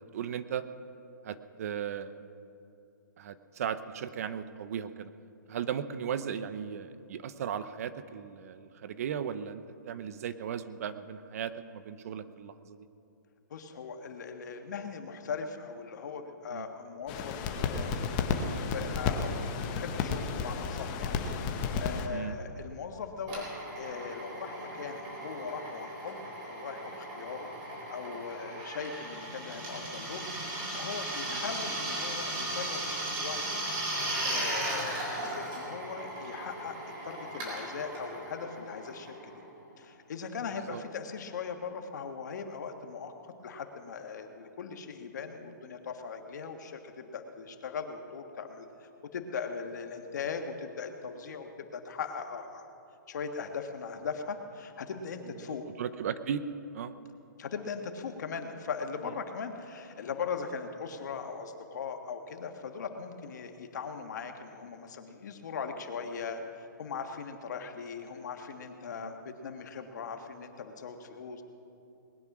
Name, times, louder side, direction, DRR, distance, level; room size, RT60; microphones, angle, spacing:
voice 1, 0.1-0.6 1.2-2.2 3.2-5.1 5.5-12.8 16.5-16.7 22.1-22.3 28.5-28.6 31.3-31.4 40.7-40.8 55.5-56.4 56.7-56.9 69.0-69.1, right 8 dB, 50° right, 12 dB, 0.7 m, -36 dB
voice 2, 13.5-21.3 21.8-23.5 23.7-27.5 27.9-30.2 30.7-33.6 34.2-36.7 37.0-39.3 39.8-52.7 53.1-55.7 57.4-71.4, left 6 dB, 60° left, 5 dB, 1.6 m, -39 dB
sound 1, 17.1-22.1, left 5 dB, 30° left, 1.1 m, -32 dB
Drill, 23.3-39.6, right 1 dB, 25° right, 4.2 m, -37 dB
20.0 x 9.7 x 6.1 m, 2.7 s
hypercardioid pair, 160°, 10 cm